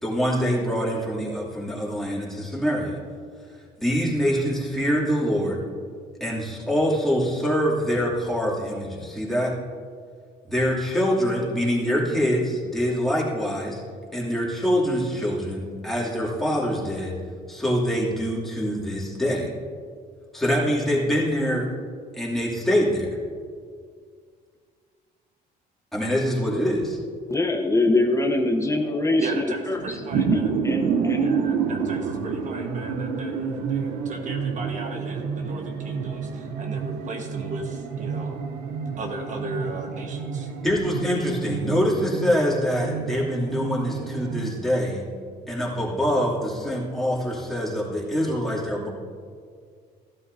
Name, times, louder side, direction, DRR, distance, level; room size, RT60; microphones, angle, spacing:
voice 1, 0.0-3.0 3.8-5.6 6.2-9.5 10.4-13.8 14.1-17.1 17.5-19.5 20.3-21.7 22.1-23.1 25.9-27.0 40.6-45.0 45.5-48.9, equal, ahead, -6 dB, 2.8 m, -24 dB
voice 2, 27.3-30.0 30.3-31.4, left 2 dB, 15° left, 4 dB, 0.9 m, -24 dB
voice 3, 29.2-30.5 31.1-38.4 39.0-40.5, right 2 dB, 45° right, 2 dB, 1.4 m, -36 dB
sound 1, 29.8-44.5, right 5 dB, 75° right, 0.9 m, -29 dB
14.5 x 12.0 x 2.7 m, 2.1 s
cardioid pair, 110°, 17 cm